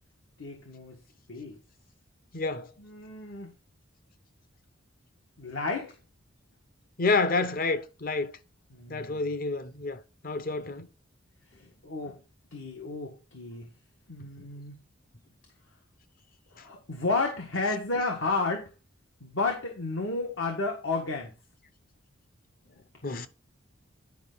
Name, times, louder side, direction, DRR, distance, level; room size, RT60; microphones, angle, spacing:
voice 1, 0.4-1.0 1.3-1.6 2.8-3.5 5.4-5.9 8.7-9.2 11.8-12.2 12.5-13.7 14.1-14.8 16.5-18.7 19.2-21.3, left 3 dB, 75° left, 1.6 m, -32 dB
voice 2, 2.3-2.7 7.0-8.3 8.9-10.9 23.0-23.3, left 3 dB, 45° left, 0.8 m, -29 dB
10.5 x 5.3 x 4.0 m
head